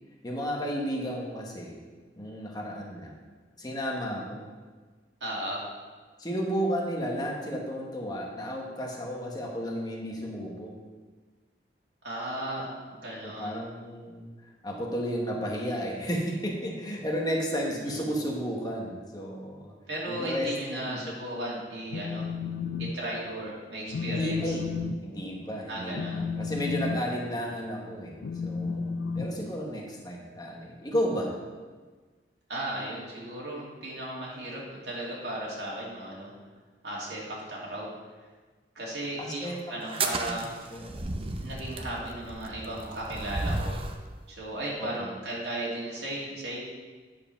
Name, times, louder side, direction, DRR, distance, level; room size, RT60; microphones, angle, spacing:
voice 1, 0.2-1.8 2.2-3.1 3.6-4.5 6.2-10.7 13.2-19.7 20.1-21.1 24.1-24.6 25.0-28.1 28.4-31.3 39.2-39.7 40.1-40.4 40.7-41.2 44.8-45.1, equal, 25° left, -1 dB, 1.4 m, -33 dB
voice 2, 5.2-5.6 12.0-13.6 17.7-18.0 19.9-22.3 22.8-24.5 25.7-26.2 32.5-36.3 36.8-37.9 38.7-40.5 41.4-43.8 44.3-46.6, right 1 dB, 70° right, -5 dB, 2.6 m, -35 dB
Telephone, 21.7-22.9 23.3-23.5 23.9-30.0, left 5 dB, 85° left, 0.4 m, -33 dB
sound 1, 39.8-44.0, right 2 dB, 30° right, 0.6 m, -34 dB
9.5 x 4.9 x 5.9 m, 1.4 s
head